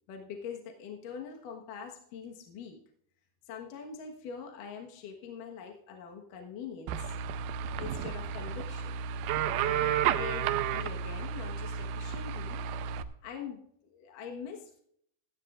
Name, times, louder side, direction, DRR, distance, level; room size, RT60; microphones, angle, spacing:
voice 1, 0.1-2.8 3.5-7.2 7.8-9.0 9.4-12.6 13.2-14.8, left 6 dB, 65° left, 2 dB, 2.7 m, -43 dB
sound 1, 6.9-13.0, right 8 dB, 85° right, 2.6 m, -32 dB
16.0 x 15.0 x 2.5 m, 0.68 s
omnidirectional pair, 4.5 m